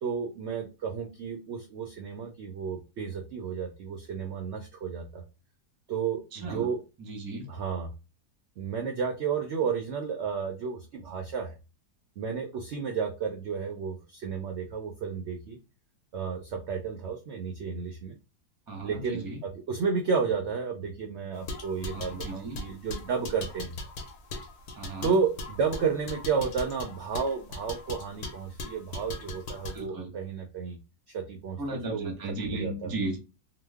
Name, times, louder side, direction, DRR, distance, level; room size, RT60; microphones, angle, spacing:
voice 1, 0.0-5.2 5.9-6.8 7.5-7.9 8.6-11.5 12.2-15.6 16.1-18.2 18.8-23.7 25.0-30.8 31.1-32.1 32.4-32.9, right 6 dB, 70° right, 3 dB, 0.6 m, -32 dB
voice 2, 6.3-6.7 7.0-7.5 18.7-19.4 21.9-22.6 24.8-25.2 29.7-30.1 31.6-33.2, right 2 dB, 25° right, 2 dB, 0.5 m, -35 dB
sound 1, 21.4-29.8, left 2 dB, 70° left, 1.2 m, -39 dB
3.0 x 2.0 x 3.4 m, 0.28 s
omnidirectional pair, 1.7 m